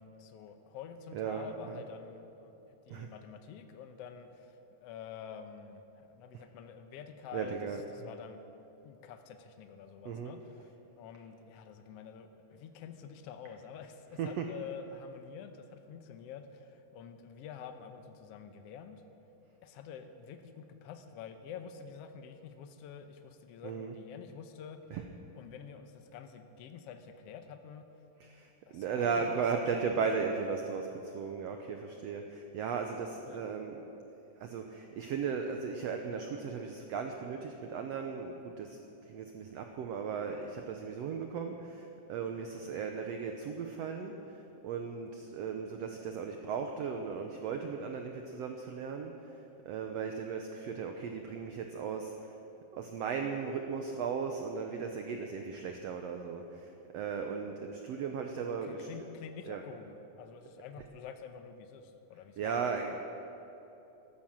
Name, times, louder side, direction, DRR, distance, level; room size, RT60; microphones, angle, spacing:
voice 1, 0.0-7.6 7.9-8.4 8.8-19.0 19.6-24.8 25.3-27.9 28.7-29.4 29.8-29.9 33.3-33.4 58.6-62.8, left 7 dB, 80° left, 8 dB, 1.4 m, -48 dB
voice 2, 1.1-1.9 2.9-3.1 6.3-6.4 7.3-8.1 10.0-10.4 14.1-14.6 23.6-24.0 24.9-25.1 28.2-33.9 34.4-52.4 52.7-59.0 59.4-59.6 60.8-60.9 62.4-63.0, right 5 dB, 80° right, 4 dB, 1.5 m, -37 dB
14.0 x 12.0 x 7.3 m, 3.0 s
omnidirectional pair, 3.8 m